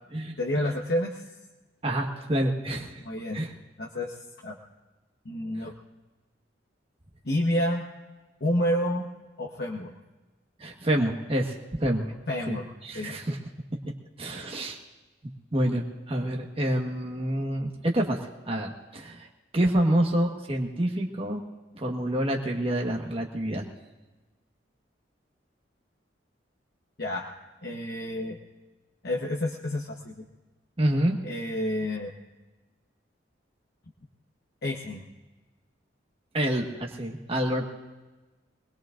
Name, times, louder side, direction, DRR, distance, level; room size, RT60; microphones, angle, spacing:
voice 1, 0.4-1.2 3.0-3.4 3.8-4.1 4.4-4.6 5.2-5.7 7.2-7.8 8.4-9.1 9.4-9.9 12.3-12.7 12.9-13.2 27.0-27.3 27.6-28.4 29.0-30.2 31.2-32.1 34.6-35.0, left 1 dB, 60° left, -1 dB, 1.2 m, -29 dB
voice 2, 1.8-3.0 3.3-3.5 5.6-5.7 10.6-12.1 12.5-13.4 14.2-14.8 15.5-18.2 18.5-19.3 19.5-21.4 21.7-23.6 30.8-31.2 36.3-37.7, right 1 dB, 30° right, 0 dB, 1.4 m, -27 dB
23.0 x 20.5 x 2.6 m, 1.2 s
head